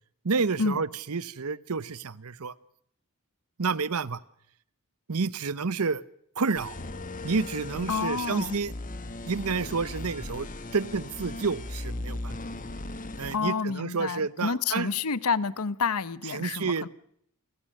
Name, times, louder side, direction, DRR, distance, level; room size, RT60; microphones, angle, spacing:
voice 1, 0.2-2.5 3.6-4.2 5.1-6.0 6.4-6.8 7.2-8.7 9.3-10.5 10.7-12.3 13.2-14.9 16.3-16.9, right 4 dB, 80° right, 0.8 m, -29 dB
sound 1, 6.5-13.4, left 2 dB, 40° left, 1.3 m, -38 dB
voice 2, 7.9-8.6 13.3-16.9, left 5 dB, 80° left, 0.9 m, -29 dB
29.0 x 15.0 x 6.6 m
head